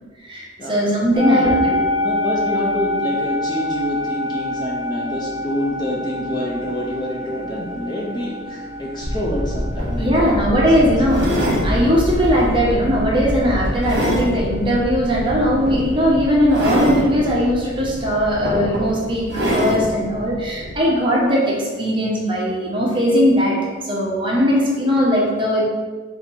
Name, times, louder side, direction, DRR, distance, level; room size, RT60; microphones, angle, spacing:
voice 1, 0.2-1.5 10.0-25.6, equal, 25° right, -5 dB, 1.0 m, -19 dB
sound 1, 1.1-17.3, left 1 dB, 50° left, 1.5 m, -28 dB
voice 2, 1.1-10.4 10.8-10.9, equal, 25° left, -3 dB, 0.5 m, -27 dB
sound 2, 9.0-20.9, equal, 70° left, 1.0 m, -28 dB
sound 3, 9.4-9.5 9.8-10.0 11.1-11.7 12.3-12.6 13.1-14.3 15.6-15.8 16.5-17.1 17.9-18.0 18.4-18.9 19.3-19.9 20.6-20.7, equal, 65° right, 1.1 m, -23 dB
4.3 x 2.7 x 4.1 m, 1.4 s
head